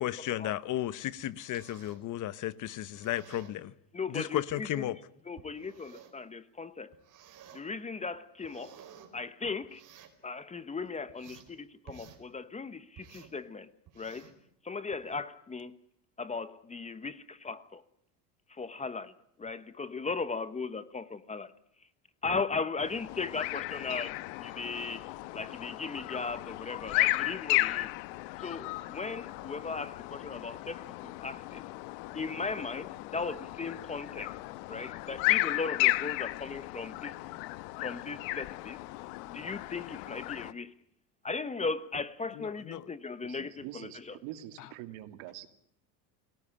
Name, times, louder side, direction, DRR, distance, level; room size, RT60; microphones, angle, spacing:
voice 1, 0.0-3.7 4.1-5.0 42.4-42.9 44.6-44.7, left 13 dB, 40° left, 1.0 m, -34 dB
sound 1, 1.2-2.1 2.8-3.6 4.5-4.6 5.4-6.2 6.9-7.6 8.1-9.1 9.6-10.2 10.7-11.5 11.9-12.2 13.0-13.4 13.9-14.4 14.9-15.2, right 9 dB, 40° right, 5.0 m, -54 dB
voice 2, 3.9-4.7 5.3-6.9 7.5-8.8 9.1-9.8 10.2-13.7 14.0-14.3 14.6-15.8 16.2-17.8 18.5-19.1 19.4-21.5 22.2-27.9 28.4-31.7 32.1-34.4 34.7-37.2 37.8-38.8 39.3-40.7 41.2-44.2, left 4 dB, 15° left, 1.0 m, -37 dB
sound 2, 22.8-40.5, left 20 dB, 70° left, 1.2 m, -34 dB
voice 3, 43.2-45.5, right 13 dB, 65° right, 2.8 m, -45 dB
29.5 x 18.5 x 8.7 m
supercardioid pair, 135°, 47 cm